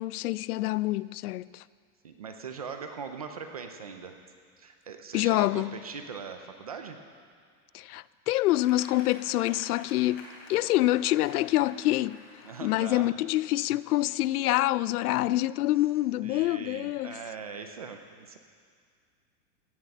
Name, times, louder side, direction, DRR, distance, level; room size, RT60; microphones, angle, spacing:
voice 1, 0.0-1.6 5.1-5.7 7.7-12.2 12.6-17.2, left 16 dB, 80° left, 0.5 m, -26 dB
voice 2, 2.0-4.2 4.6-7.0 12.4-13.1 16.2-18.4, right 5 dB, 30° right, 0.3 m, -41 dB
sound 1, 8.5-12.8 13.6-14.4, left 3 dB, 40° left, 3.1 m, -50 dB
16.0 x 7.5 x 8.5 m
supercardioid pair, 175°, 44 cm